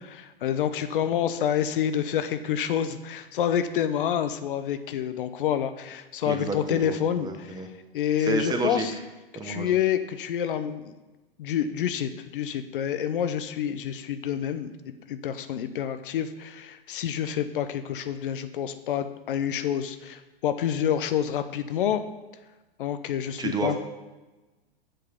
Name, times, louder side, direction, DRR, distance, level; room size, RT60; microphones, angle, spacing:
voice 1, 0.0-7.5 7.9-8.9 9.4-10.9 11.4-14.7 15.1-22.0 22.8-23.8, left 9 dB, 60° left, 10 dB, 0.7 m, -28 dB
voice 2, 6.2-7.7 8.2-8.9 9.3-9.8 23.4-23.8, right 3 dB, 15° right, 5 dB, 1.0 m, -30 dB
7.7 x 6.6 x 5.1 m, 1.1 s
hypercardioid pair, 110°, 30 cm